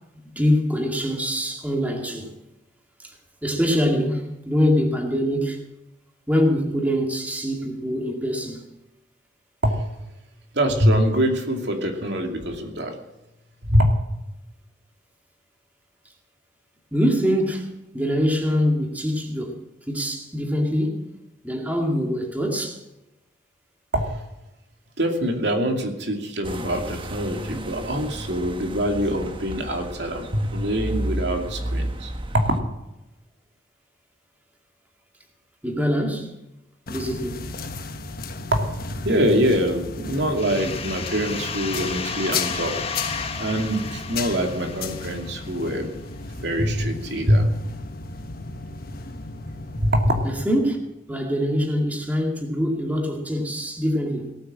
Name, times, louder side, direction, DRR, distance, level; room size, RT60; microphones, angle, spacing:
voice 1, 0.3-2.3 3.0-5.6 6.3-8.6 16.9-19.6 19.9-21.1 21.4-22.8 29.7-29.8 35.6-36.4 36.9-37.4 50.2-50.8 51.1-54.3, equal, 10° right, 2.2 m, -24 dB
voice 2, 10.5-12.9 13.7-13.9 23.9-24.2 25.0-32.5 38.5-38.7 39.0-42.7 43.4-45.9 46.4-47.5 49.8-50.1, equal, 65° right, 2.6 m, -24 dB
sound 1, 26.4-32.6, right 1 dB, 30° right, 1.2 m, -32 dB
sound 2, 36.9-50.4, left 4 dB, 55° left, 1.3 m, -34 dB
sound 3, 40.4-45.9, left 5 dB, 35° left, 1.4 m, -33 dB
18.0 x 8.8 x 7.5 m
head